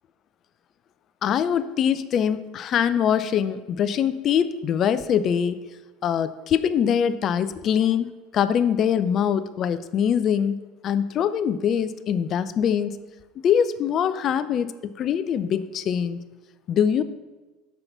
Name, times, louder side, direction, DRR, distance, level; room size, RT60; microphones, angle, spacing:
voice 1, 1.2-5.6 6.0-10.6 10.8-13.0 13.4-16.2 16.7-17.0, left 8 dB, 40° left, 14 dB, 0.4 m, -23 dB
7.7 x 5.6 x 6.0 m, 1.2 s
figure-of-eight pair, 70°, 0 cm